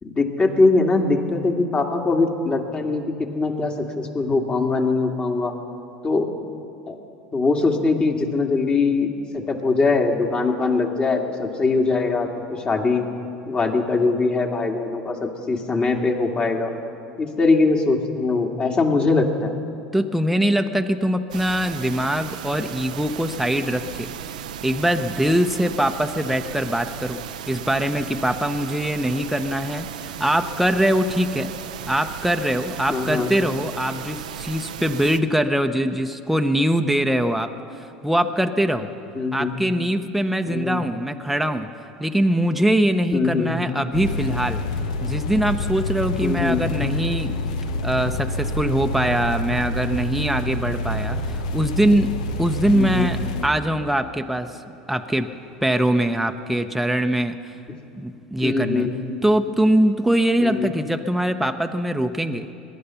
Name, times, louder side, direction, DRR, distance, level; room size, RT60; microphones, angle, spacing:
voice 1, 0.0-5.5 6.0-6.3 6.9-7.0 7.3-13.1 13.5-16.7 17.2-19.5 32.9-33.3 39.1-39.5 40.4-40.9 43.1-43.5 46.2-46.6 52.6-53.1 58.4-58.9 60.4-60.7, left 3 dB, 30° left, 2 dB, 2.1 m, -22 dB
voice 2, 19.9-24.1 24.6-27.2 27.5-31.5 31.9-37.5 37.8-38.9 39.3-41.7 42.0-44.6 45.0-47.3 47.8-52.1 52.4-54.5 54.9-55.3 55.6-57.6 57.9-58.9 59.2-62.5, right 1 dB, ahead, 5 dB, 0.9 m, -22 dB
sound 1, 21.3-35.2, right 9 dB, 80° right, 0.6 m, -35 dB
sound 2, 43.9-53.5, left 2 dB, 75° left, 1.0 m, -27 dB
23.0 x 10.5 x 5.7 m, 2.6 s
hypercardioid pair, 80°, 4 cm